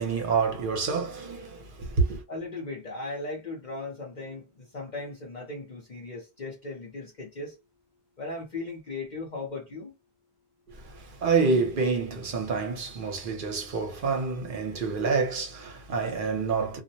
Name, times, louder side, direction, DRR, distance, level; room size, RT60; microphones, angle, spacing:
voice 1, 0.0-2.2 10.7-16.8, right 4 dB, 55° right, 0.9 m, -28 dB
voice 2, 2.3-7.5 8.2-9.9, left 3 dB, 45° left, 0.8 m, -37 dB
2.4 x 2.1 x 2.6 m
omnidirectional pair, 1.1 m